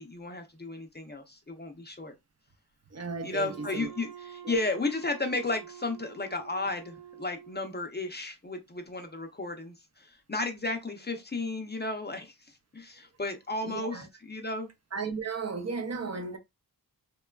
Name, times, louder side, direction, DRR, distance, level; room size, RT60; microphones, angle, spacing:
voice 1, 0.0-2.1 3.2-14.7, left 2 dB, 25° left, 0.5 m, -34 dB
voice 2, 2.9-3.9 4.4-4.5 13.6-14.1 14.9-16.4, right 4 dB, 40° right, 0.5 m, -35 dB
Wind instrument woodwind instrument, 3.3-8.0, right 9 dB, 85° right, 1.0 m, -48 dB
3.0 x 2.2 x 2.2 m
wide cardioid pair, 85°, 40 cm